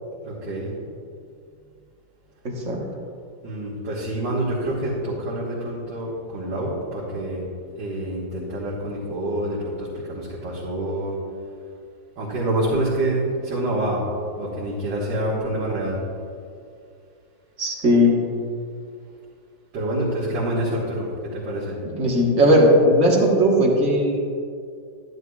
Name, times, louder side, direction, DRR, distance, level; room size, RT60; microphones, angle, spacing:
voice 1, 0.2-0.7 3.4-7.5 7.7-11.2 12.2-14.0 14.3-16.0 19.7-21.8, right 1 dB, 70° right, -9 dB, 2.3 m, -27 dB
voice 2, 2.4-2.8 17.6-18.3 22.0-24.2, equal, 45° right, -2 dB, 1.5 m, -17 dB
11.0 x 11.0 x 2.4 m, 2.3 s
omnidirectional pair, 2.0 m